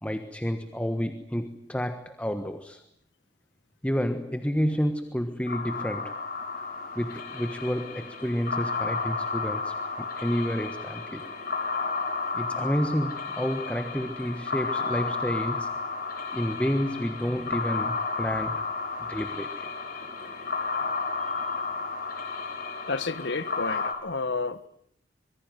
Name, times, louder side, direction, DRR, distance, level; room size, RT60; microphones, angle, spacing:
voice 1, 0.0-2.8 3.8-6.2 6.9-11.2 12.3-15.8 16.3-18.7 19.0-19.7 21.2-21.7, equal, 10° left, 1.4 m, -30 dB
sound 1, 5.5-23.9, left 4 dB, 55° left, 5.3 m, -32 dB
voice 2, 22.9-24.7, left 3 dB, 75° left, 1.4 m, -31 dB
26.0 x 24.0 x 9.2 m
head